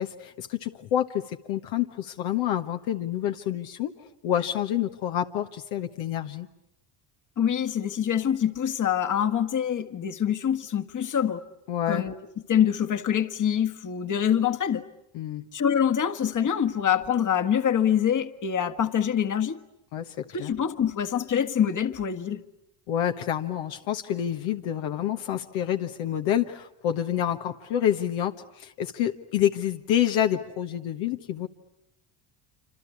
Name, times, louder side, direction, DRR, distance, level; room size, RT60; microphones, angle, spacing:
voice 1, 0.0-3.9 4.2-6.5 11.7-12.1 15.1-15.4 19.9-20.5 22.9-31.5, left 10 dB, 75° left, 1.4 m, -28 dB
voice 2, 7.4-11.4 11.9-12.2 12.5-14.8 15.5-19.6 20.3-22.4, left 9 dB, 40° left, 1.6 m, -25 dB
26.5 x 26.5 x 8.5 m
supercardioid pair, 70°, 48 cm